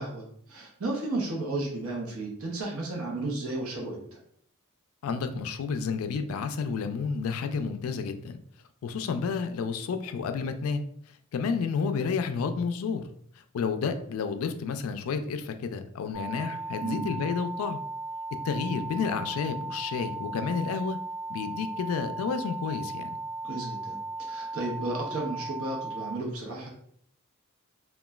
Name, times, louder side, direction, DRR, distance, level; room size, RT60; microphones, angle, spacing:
voice 1, 0.0-4.0 16.8-17.1 23.4-24.0 24.3-26.7, right 2 dB, 70° right, -1 dB, 0.8 m, -33 dB
voice 2, 5.0-8.4 8.8-10.9 11.3-13.0 13.4-17.8 18.4-21.0 21.3-23.2, left 5 dB, 70° left, 8 dB, 0.3 m, -30 dB
sound 1, 16.1-26.1, right 2 dB, 10° right, 0.9 m, -37 dB
3.0 x 2.2 x 2.3 m, 0.65 s
head